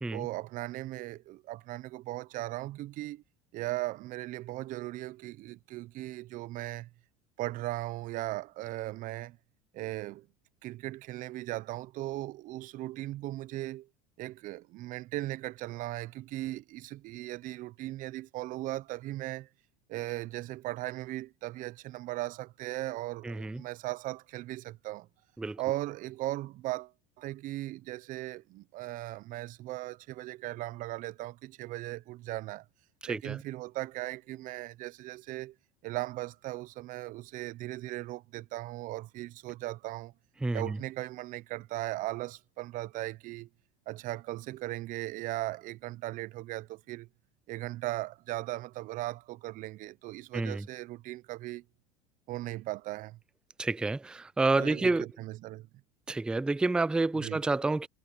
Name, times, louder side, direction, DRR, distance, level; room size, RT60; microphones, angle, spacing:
voice 1, 0.1-3.2 3.5-6.9 7.4-9.4 9.7-10.3 10.6-13.9 14.2-19.5 19.9-25.1 25.6-26.9 27.2-32.6 33.1-35.5 35.8-40.1 40.5-43.5 43.9-47.1 47.5-51.6 52.3-53.2 54.6-55.7 57.2-57.4, right 17 dB, 55° right, 0.9 m, -38 dB
voice 2, 23.2-23.6 25.4-25.6 33.0-33.4 40.4-40.8 50.3-50.7 53.6-55.1 56.1-57.9, right 3 dB, 5° right, 0.3 m, -29 dB
hypercardioid pair, 85°, 16 cm